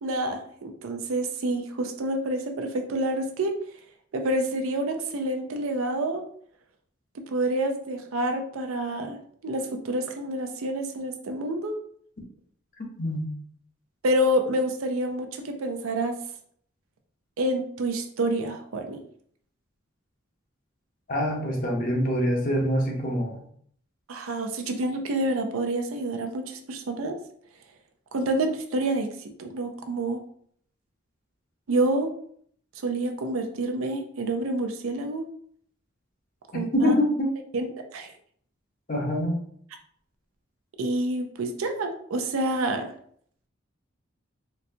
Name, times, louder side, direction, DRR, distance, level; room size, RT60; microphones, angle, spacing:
voice 1, 0.0-3.5 4.1-6.2 7.1-11.8 14.0-16.2 17.4-19.0 24.1-27.1 28.1-29.1 29.4-30.2 31.7-32.1 32.8-35.3 36.5-36.9 37.5-38.1 40.8-42.9, right 1 dB, 90° right, 5 dB, 0.5 m, -28 dB
voice 2, 13.0-13.3 21.1-23.4 36.5-37.3 38.9-39.4, equal, 40° left, -1 dB, 0.7 m, -25 dB
4.0 x 2.2 x 2.6 m, 0.62 s
head